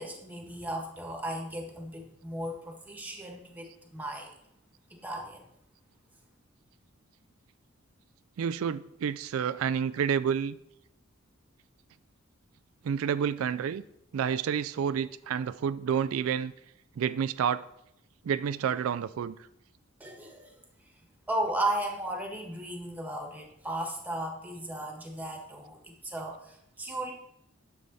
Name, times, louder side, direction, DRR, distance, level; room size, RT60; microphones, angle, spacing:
voice 1, 0.0-4.3 5.0-5.5 20.0-20.5 21.3-27.1, right 1 dB, 10° right, 2 dB, 1.5 m, -35 dB
voice 2, 8.4-10.5 12.8-13.8 14.1-16.5 17.0-17.6 18.2-19.4, right 7 dB, 90° right, 13 dB, 0.3 m, -29 dB
9.6 x 7.0 x 4.1 m, 0.79 s
head